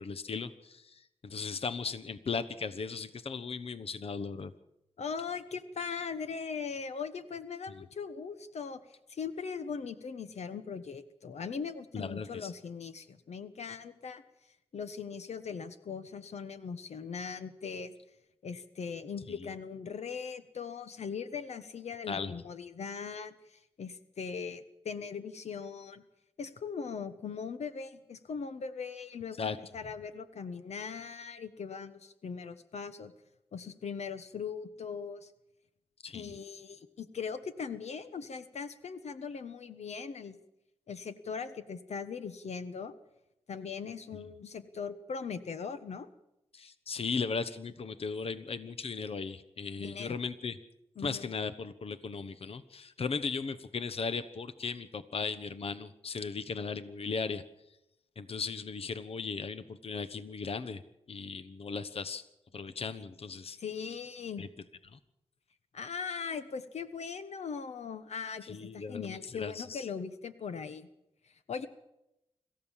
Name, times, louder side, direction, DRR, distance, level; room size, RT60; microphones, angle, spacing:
voice 1, 0.0-4.5 11.9-12.5 22.1-22.3 29.4-29.6 36.0-36.3 46.5-50.6 51.0-57.4 58.2-60.8 61.1-62.2 62.5-63.6 64.4-64.5 64.9-65.0 68.4-69.9, left 5 dB, 60° left, 12 dB, 1.1 m, -37 dB
voice 2, 5.0-8.8 9.1-14.2 14.7-17.9 18.4-26.0 26.4-33.1 33.5-35.3 36.1-40.3 40.9-42.9 43.5-46.1 49.8-50.2 51.0-51.3 63.6-64.4 65.7-70.9 71.2-71.7, left 6 dB, 85° left, 11 dB, 1.3 m, -40 dB
26.5 x 14.5 x 7.4 m, 0.86 s
wide cardioid pair, 85°, 11 cm